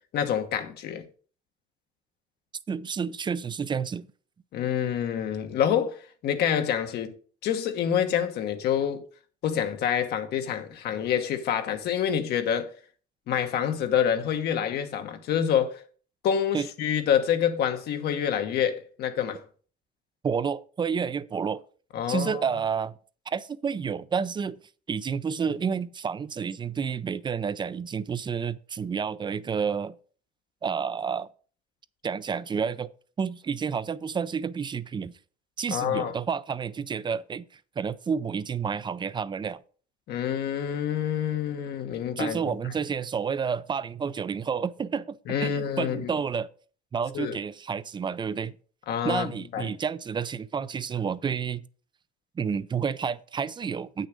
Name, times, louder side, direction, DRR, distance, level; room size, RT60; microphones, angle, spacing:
voice 1, 0.1-1.1 4.5-7.1 7.4-9.0 9.4-12.7 13.3-15.8 16.2-19.4 21.9-22.4 35.7-36.1 40.1-42.5 45.3-46.1 47.1-47.4 48.9-49.7, left 9 dB, 75° left, 1.3 m, -27 dB
voice 2, 2.7-4.1 16.5-16.7 20.2-21.6 22.1-22.9 23.3-24.6 24.9-30.0 30.6-31.3 32.0-32.9 33.2-35.2 35.6-39.6 42.2-46.5 46.9-48.6 49.0-51.7 52.4-54.1, right 6 dB, 25° right, 0.5 m, -30 dB
8.1 x 6.4 x 5.1 m
cardioid pair, 110°, 17 cm